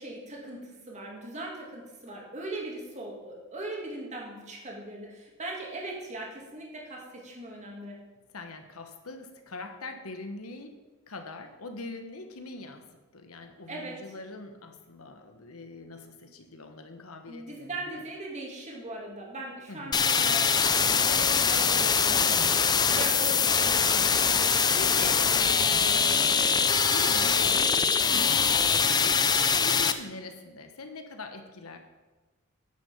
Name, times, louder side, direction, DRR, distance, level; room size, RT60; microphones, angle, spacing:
voice 1, 0.0-8.0 13.7-14.0 17.3-24.3 28.8-29.1, right 2 dB, 35° right, -2 dB, 2.5 m, -40 dB
voice 2, 8.3-10.8 11.1-18.0 19.7-20.1 22.2-22.6 22.9-23.4 24.7-26.0 26.9-31.8, left 3 dB, 90° left, 6 dB, 1.3 m, -42 dB
sound 1, 19.9-29.9, left 6 dB, 20° left, 0.4 m, -23 dB
10.0 x 6.6 x 7.2 m, 1.2 s
head